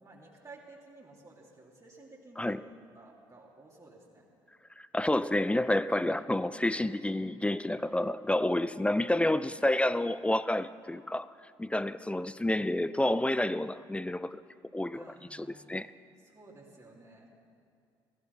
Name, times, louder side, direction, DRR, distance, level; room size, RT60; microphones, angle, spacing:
voice 1, 0.0-2.6 2.9-4.2 14.9-15.9 16.2-17.3, right 3 dB, 30° right, 3.3 m, -54 dB
voice 2, 2.4-2.7 4.8-11.3 11.6-14.4 14.7-15.0 15.3-15.9, left 1 dB, 10° left, 0.5 m, -29 dB
16.5 x 15.0 x 5.5 m
hypercardioid pair, 50°, 12 cm